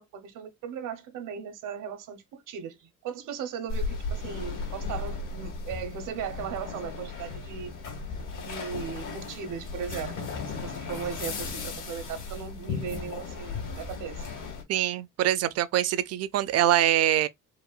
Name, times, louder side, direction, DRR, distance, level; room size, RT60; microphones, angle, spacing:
voice 1, 0.0-7.7 8.4-14.3, right 7 dB, 85° right, 0.9 m, -37 dB
sound 1, 3.7-14.6, left 4 dB, 80° left, 2.2 m, -36 dB
voice 2, 14.7-17.3, right 12 dB, 55° right, 0.4 m, -24 dB
4.8 x 2.2 x 2.3 m
cardioid pair, 150°, 31 cm